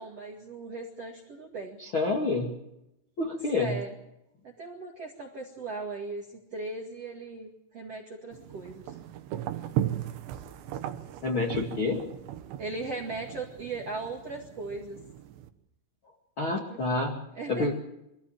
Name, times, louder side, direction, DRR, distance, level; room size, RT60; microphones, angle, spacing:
voice 1, 0.0-1.8 3.6-4.0 4.4-9.0 12.6-15.0 16.7-16.8 17.3-17.7, right 3 dB, 45° right, 0 dB, 2.1 m, -38 dB
voice 2, 1.8-2.5 3.2-3.7 11.2-12.0 16.4-17.2 17.5-17.7, left 3 dB, 40° left, -2 dB, 1.9 m, -28 dB
sound 1, 8.3-15.5, right 12 dB, 70° right, 3.1 m, -37 dB
24.5 x 15.5 x 7.4 m, 0.84 s
omnidirectional pair, 5.8 m